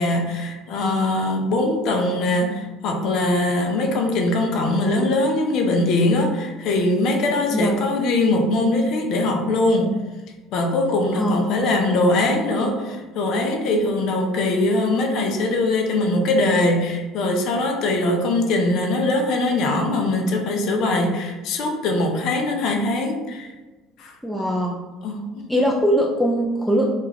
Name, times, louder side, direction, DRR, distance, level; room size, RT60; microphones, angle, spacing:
voice 1, 0.0-10.0 10.5-23.5 24.0-24.2 25.0-25.5, left 2 dB, 60° left, 4 dB, 0.5 m, -21 dB
voice 2, 11.2-11.6 24.2-24.8 25.5-26.9, equal, ahead, -1 dB, 0.3 m, -21 dB
2.3 x 2.2 x 3.3 m, 1.2 s
hypercardioid pair, 65°, 0 cm